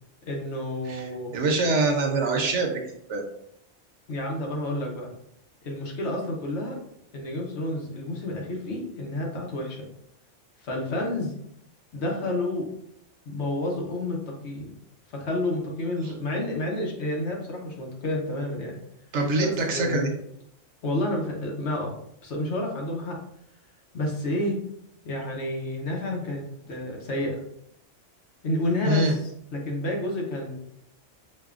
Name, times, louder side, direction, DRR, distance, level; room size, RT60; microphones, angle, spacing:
voice 1, 0.2-1.3 4.1-5.1 5.6-6.8 7.1-9.8 10.6-11.3 11.9-12.7 13.3-14.7 15.1-18.8 19.4-20.1 20.8-21.9 22.2-23.2 23.9-24.6 25.0-27.4 28.4-29.2 29.5-30.6, left 1 dB, 65° left, 0 dB, 1.1 m, -30 dB
voice 2, 0.8-2.8 3.1-3.2 16.0-16.1 19.1-20.1 28.8-29.1, right 2 dB, 70° right, 2 dB, 1.0 m, -24 dB
5.3 x 2.2 x 2.4 m, 0.74 s
omnidirectional pair, 1.3 m